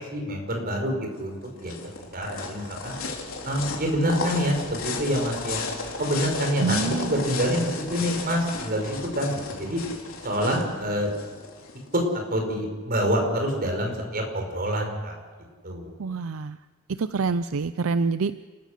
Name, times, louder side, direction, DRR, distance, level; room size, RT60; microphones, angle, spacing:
voice 1, 0.1-1.8 2.1-2.9 3.4-5.7 6.0-9.8 10.2-11.1 11.9-12.0 12.3-15.2 15.6-15.9, equal, 45° right, 2 dB, 5.3 m, -26 dB
sound 1, 1.2-12.0, left 4 dB, 75° left, 3.7 m, -34 dB
voice 2, 6.6-7.2 16.0-16.6 16.9-18.4, right 4 dB, 75° right, 13 dB, 0.5 m, -26 dB
30.0 x 14.5 x 6.6 m, 1.5 s
head